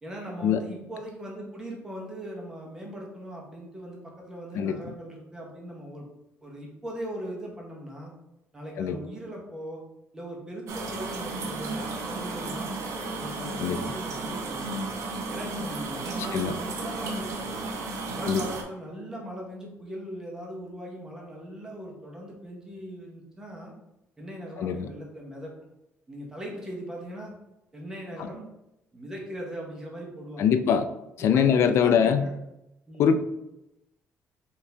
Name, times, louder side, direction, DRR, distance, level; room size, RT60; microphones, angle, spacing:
voice 1, 0.0-6.1 6.4-8.1 8.5-9.8 10.1-12.8 13.1-14.9 15.3-17.6 18.1-23.7 24.2-25.5 26.1-27.3 27.7-28.5 28.9-30.5 31.2-32.3 32.9-33.1, equal, 10° right, -2 dB, 0.9 m, -39 dB
sound 1, 10.7-18.6, right 3 dB, 65° right, 0.7 m, -33 dB
voice 2, 13.6-14.0 16.3-16.5 18.3-18.5 24.6-24.9 28.2-28.3 30.4-30.9 31.2-32.3 33.0-33.2, left 7 dB, 55° left, 9 dB, 0.3 m, -23 dB
4.5 x 2.7 x 3.3 m, 0.89 s
cardioid pair, 170°, 5 cm